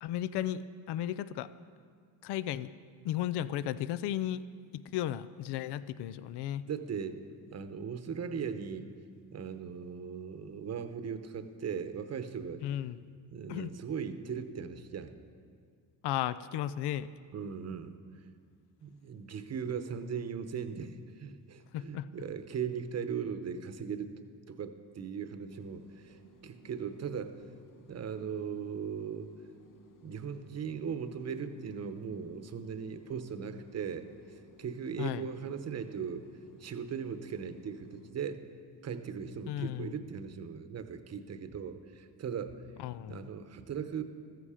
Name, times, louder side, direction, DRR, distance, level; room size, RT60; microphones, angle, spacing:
voice 1, 0.0-1.5 2.2-2.7 3.0-4.4 4.7-6.6 12.6-13.0 13.5-13.7 16.0-17.1 21.7-22.1 35.0-35.2 39.5-39.9 42.8-43.3, left 12 dB, 80° left, 16 dB, 0.5 m, -34 dB
voice 2, 6.7-8.9 9.3-12.6 13.3-15.1 17.3-17.9 18.8-24.1 24.5-27.4 27.9-29.3 30.0-36.3 36.6-38.4 38.8-42.7 43.1-44.0, right 7 dB, 40° right, 9 dB, 0.9 m, -38 dB
sound 1, 25.5-38.2, equal, 55° left, 0.9 m, -58 dB
14.5 x 14.5 x 5.0 m, 2.1 s
cardioid pair, 130°, 39 cm